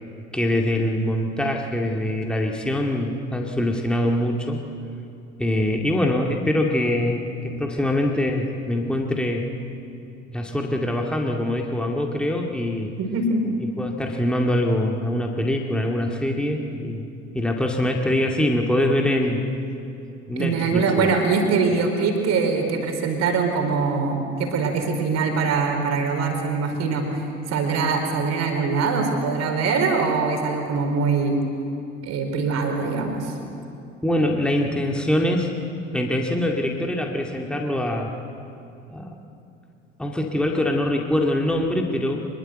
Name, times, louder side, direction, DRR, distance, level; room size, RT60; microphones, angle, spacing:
voice 1, 0.3-4.6 5.4-9.5 10.3-12.9 13.8-17.1 17.3-19.5 20.3-21.1 33.4-33.5 34.0-35.5 35.9-38.1 38.9-39.1 40.0-42.3, left 1 dB, 5° left, 1 dB, 2.2 m, -23 dB
voice 2, 13.0-13.5 20.4-31.4 32.0-33.4, right 4 dB, 45° right, 3 dB, 4.5 m, -23 dB
25.0 x 22.5 x 8.2 m, 2.6 s
figure-of-eight pair, 60°, 36 cm